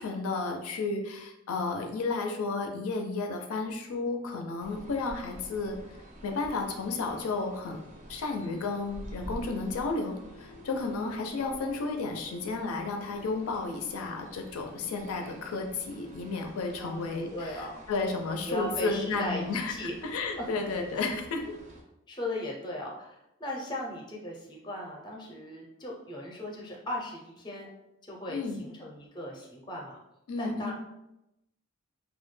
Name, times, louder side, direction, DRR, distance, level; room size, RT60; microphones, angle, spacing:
voice 1, 0.0-5.8 6.2-7.8 8.1-21.6 28.3-28.6 30.3-30.7, left 3 dB, 80° left, 3 dB, 0.4 m, -32 dB
sound 1, 4.6-21.8, equal, 35° right, 0.4 m, -49 dB
voice 2, 16.8-17.8 18.4-19.9 20.4-20.5 20.9-21.1 22.1-27.7 28.0-30.0 30.4-30.7, left 1 dB, 20° left, -1 dB, 0.5 m, -38 dB
2.2 x 2.1 x 3.1 m, 0.87 s
head